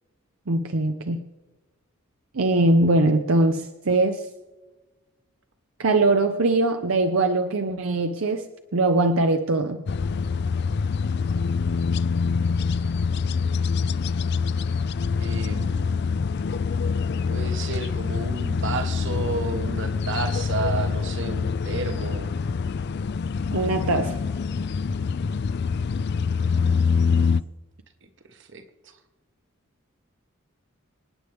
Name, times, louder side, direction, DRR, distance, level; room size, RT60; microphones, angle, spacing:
voice 1, 0.5-1.2 2.3-4.2 5.8-8.5 8.7-9.8 23.5-24.1, right 2 dB, 80° right, 6 dB, 0.7 m, -21 dB
sound 1, 9.9-27.4, left 5 dB, 55° left, 0.4 m, -25 dB
voice 2, 15.2-16.0 17.3-22.3 28.3-29.0, right 3 dB, 60° right, 7 dB, 1.3 m, -32 dB
27.0 x 9.4 x 3.5 m, 1.2 s
head